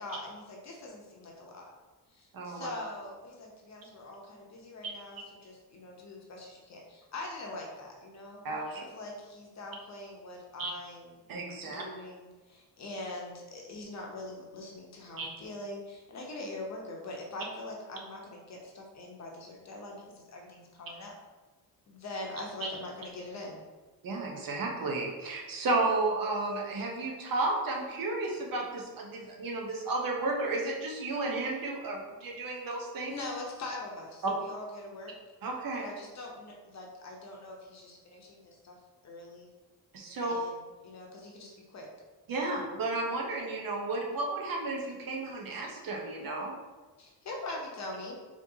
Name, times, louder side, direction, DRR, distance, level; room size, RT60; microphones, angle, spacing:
voice 1, 0.0-1.7 2.1-8.4 8.9-11.1 11.6-21.1 21.9-23.6 33.1-35.1 35.8-38.8 39.0-39.5 40.2-41.9 47.0-48.2, left 2 dB, 45° left, -1 dB, 0.8 m, -43 dB
voice 2, 2.3-2.7 8.4-8.8 10.6-10.7 11.3-11.8 15.2-15.3 22.6-22.7 24.0-33.1 35.4-35.8 39.9-40.3 42.3-46.5, right 2 dB, 60° right, 0 dB, 0.8 m, -33 dB
4.1 x 2.9 x 2.7 m, 1.3 s
cardioid pair, 125°, 39 cm